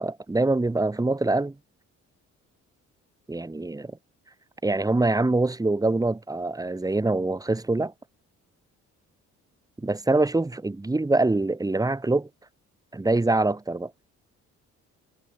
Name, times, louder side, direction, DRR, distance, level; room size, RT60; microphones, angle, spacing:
voice 1, 0.0-1.5 3.3-3.9 4.6-7.9 9.8-12.3 12.9-13.9, right 2 dB, 10° right, 1.2 m, -24 dB
cardioid pair, 90°, 30 cm